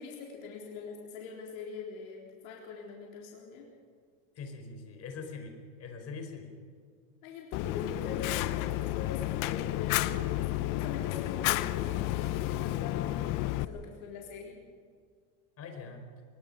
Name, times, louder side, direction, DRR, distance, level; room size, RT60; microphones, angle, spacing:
voice 1, 0.0-3.7 7.2-14.6, left 5 dB, 80° left, -1 dB, 4.0 m, -43 dB
voice 2, 4.3-5.5 5.8-6.5 15.6-16.1, left 4 dB, 35° left, 4 dB, 4.7 m, -42 dB
Fire, 7.5-13.6, left 16 dB, 50° left, 0.9 m, -31 dB
23.0 x 21.5 x 5.5 m, 2.1 s
supercardioid pair, 130°, 41 cm